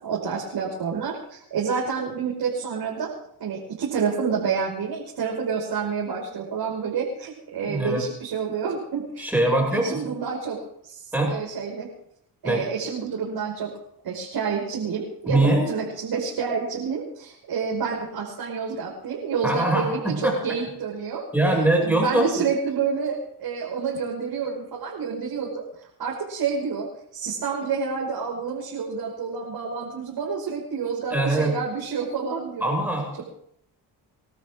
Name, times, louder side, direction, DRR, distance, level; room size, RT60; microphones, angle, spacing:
voice 1, 0.0-3.1 3.4-10.6 10.8-11.9 12.4-13.7 14.0-21.3 21.8-32.7, right 6 dB, 60° right, -4 dB, 5.8 m, -29 dB
voice 2, 7.6-8.0 9.2-10.1 11.1-11.3 12.4-12.6 15.3-15.7 19.4-20.4 21.3-22.2 31.1-31.5 32.6-33.2, right 1 dB, 5° right, -1 dB, 6.6 m, -22 dB
28.0 x 13.0 x 3.8 m, 0.71 s
supercardioid pair, 70°, 42 cm